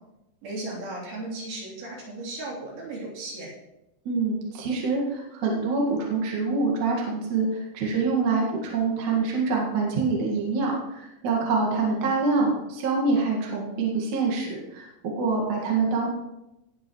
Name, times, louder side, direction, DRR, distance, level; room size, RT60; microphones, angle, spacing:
voice 1, 0.4-3.5 11.9-12.1, right 2 dB, 75° right, -5 dB, 5.3 m, -35 dB
voice 2, 4.1-16.1, right 4 dB, 55° right, -2 dB, 3.0 m, -25 dB
18.5 x 8.5 x 3.1 m, 0.89 s
omnidirectional pair, 4.3 m